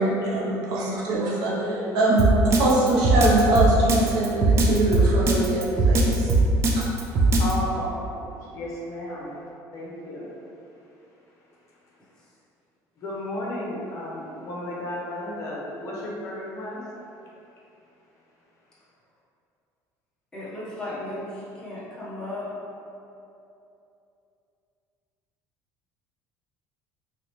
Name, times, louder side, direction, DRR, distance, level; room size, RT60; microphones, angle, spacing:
voice 1, 0.0-1.7 1.9-6.3 6.8-6.9, right 2 dB, 65° right, -5 dB, 0.8 m, -23 dB
voice 2, 1.5-2.2 7.4-7.9 8.4-9.4 9.7-10.3 13.0-16.8, left 1 dB, 40° left, -5 dB, 0.8 m, -33 dB
Drum kit, 2.2-7.5, right 3 dB, 35° right, 0.4 m, -20 dB
voice 3, 20.3-22.5, left 1 dB, 10° left, -10 dB, 0.7 m, -35 dB
3.1 x 2.9 x 3.1 m, 2.8 s
cardioid pair, 160°, 8 cm